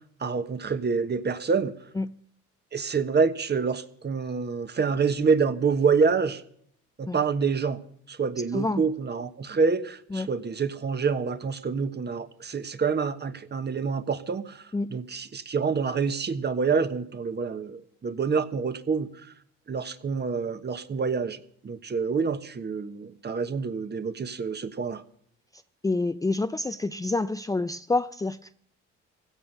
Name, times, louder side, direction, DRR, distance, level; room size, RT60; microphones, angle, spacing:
voice 1, 0.2-1.7 2.7-6.4 7.0-7.8 8.1-19.3 19.7-25.0, right 5 dB, 35° right, 1.2 m, -27 dB
voice 2, 8.5-8.8 10.1-10.3 14.7-15.0 25.8-28.4, left 2 dB, 10° left, 0.5 m, -27 dB
16.5 x 12.5 x 5.5 m
supercardioid pair, 70°, 30 cm